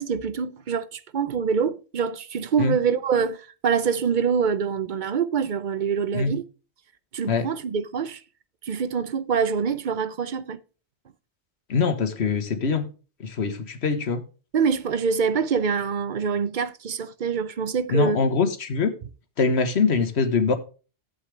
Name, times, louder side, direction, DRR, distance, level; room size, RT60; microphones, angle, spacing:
voice 1, 0.0-6.4 7.1-8.2 8.6-10.6 14.5-18.2, right 6 dB, 50° right, 0.7 m, -25 dB
voice 2, 11.7-12.9 13.2-14.2 17.9-18.9 19.4-20.6, left 4 dB, 70° left, 1.5 m, -23 dB
11.5 x 8.1 x 3.3 m
omnidirectional pair, 1.2 m